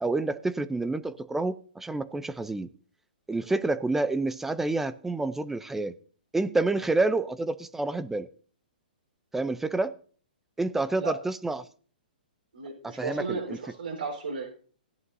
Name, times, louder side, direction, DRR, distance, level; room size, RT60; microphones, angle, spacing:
voice 1, 0.0-2.7 3.3-5.9 6.3-8.3 9.3-9.9 10.6-11.7 12.8-13.6, right 2 dB, 5° right, 14 dB, 0.5 m, -28 dB
voice 2, 12.5-14.5, right 4 dB, 90° right, -2 dB, 4.1 m, -34 dB
17.0 x 11.0 x 2.7 m, 0.42 s
hypercardioid pair, 140°, 5 cm